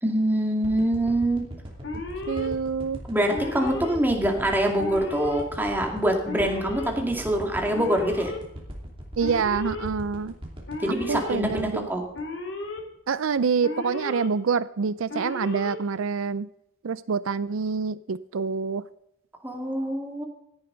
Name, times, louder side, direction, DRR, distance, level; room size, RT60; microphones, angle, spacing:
voice 1, 0.0-1.4 3.1-8.3 10.8-12.0 19.4-20.2, right 1 dB, 10° right, 2 dB, 2.2 m, -25 dB
sound 1, 0.6-13.0 13.4-13.5, equal, 25° right, 2.8 m, -40 dB
Alarm, 1.8-2.5 3.3-4.0 4.8-5.4 6.2-6.9 7.7-8.4 9.2-9.9 10.7-11.3 12.1-12.8 13.6-14.3 15.1-15.8, left 3 dB, 60° left, 2.9 m, -34 dB
voice 2, 2.3-3.0 9.2-10.3 10.9-11.9 13.1-16.5 16.8-18.8, right 5 dB, 85° right, 16 dB, 0.5 m, -26 dB
16.0 x 10.5 x 3.9 m, 0.81 s
head